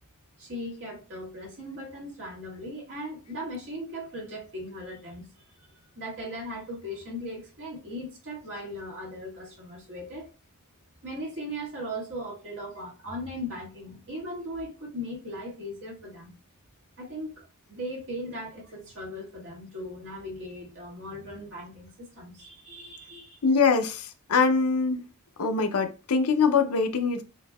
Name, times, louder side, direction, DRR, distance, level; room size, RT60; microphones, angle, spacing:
voice 1, 0.4-5.3 5.6-5.7 6.0-10.3 11.0-16.3 17.0-23.4, equal, 60° right, 2.0 m, -38 dB
voice 2, 23.4-25.0 25.4-27.2, left 5 dB, 75° left, 0.6 m, -23 dB
6.5 x 2.7 x 2.3 m
head